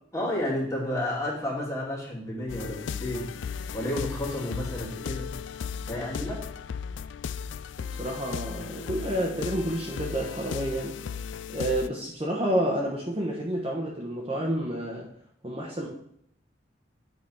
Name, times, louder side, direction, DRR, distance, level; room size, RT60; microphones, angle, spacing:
voice 1, 0.1-3.3 3.7-5.4 5.8-6.4, left 1 dB, 15° left, -5 dB, 2.6 m, -31 dB
sound 1, 2.5-11.9, left 6 dB, 85° left, 0.3 m, -36 dB
voice 2, 7.8-11.0 11.5-15.1 15.4-15.9, right 1 dB, 30° right, -3 dB, 1.3 m, -29 dB
9.3 x 4.1 x 5.6 m, 0.69 s
head